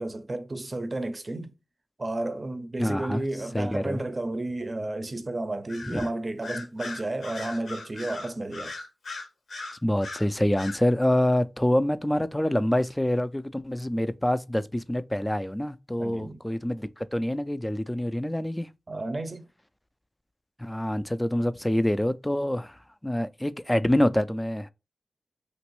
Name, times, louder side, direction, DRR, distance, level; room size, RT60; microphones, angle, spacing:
voice 1, 0.0-1.6 2.0-8.8 16.0-16.4 18.9-19.5, right 2 dB, 40° right, 0.6 m, -32 dB
voice 2, 2.8-3.2 3.5-4.0 5.9-6.1 9.8-18.7 20.6-22.7 23.0-24.7, left 1 dB, 15° left, 0.4 m, -26 dB
Bird vocalization bird call bird song, 5.7-6.1 6.4-10.3 10.6-10.8, left 3 dB, 85° left, 0.9 m, -38 dB
3.0 x 2.6 x 3.0 m
cardioid pair, 40°, 0 cm